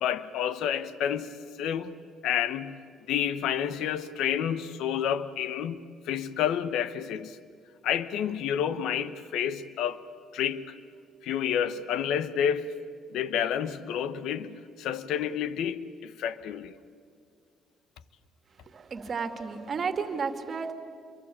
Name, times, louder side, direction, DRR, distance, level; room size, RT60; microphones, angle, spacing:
voice 1, 0.0-1.9 2.2-2.8 3.1-7.4 7.8-10.0 10.3-10.8 11.2-12.7 13.1-16.7, left 9 dB, 80° left, 1.1 m, -29 dB
voice 2, 18.7-20.7, right 5 dB, 40° right, 2.4 m, -32 dB
27.0 x 23.5 x 8.7 m
cardioid pair, 90°, 0 cm